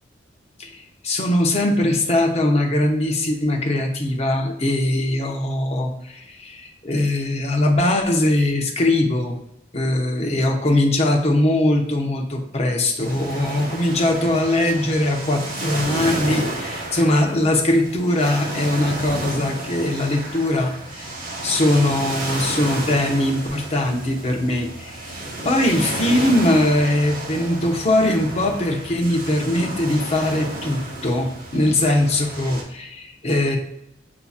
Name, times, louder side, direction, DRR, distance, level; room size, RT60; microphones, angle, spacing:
voice 1, 0.6-9.4 9.7-21.1 21.4-25.1 25.4-33.6, left 1 dB, 35° left, 2 dB, 0.7 m, -21 dB
sound 1, 13.0-32.6, right 1 dB, 45° right, 1.0 m, -31 dB
6.8 x 2.8 x 2.3 m, 0.81 s
head